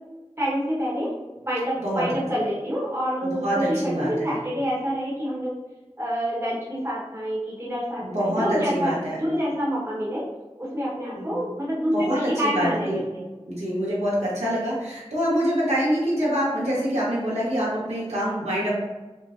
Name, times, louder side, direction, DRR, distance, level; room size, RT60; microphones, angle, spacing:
voice 1, 0.4-1.1 1.4-5.5 6.0-8.9 9.2-10.2 10.6-13.2, equal, 25° right, -7 dB, 1.1 m, -27 dB
voice 2, 3.2-4.3 8.0-9.2 11.2-11.5 11.9-13.0 13.5-18.7, equal, 75° right, -7 dB, 1.1 m, -25 dB
4.2 x 2.1 x 2.5 m, 1.2 s
wide cardioid pair, 45°, 11 cm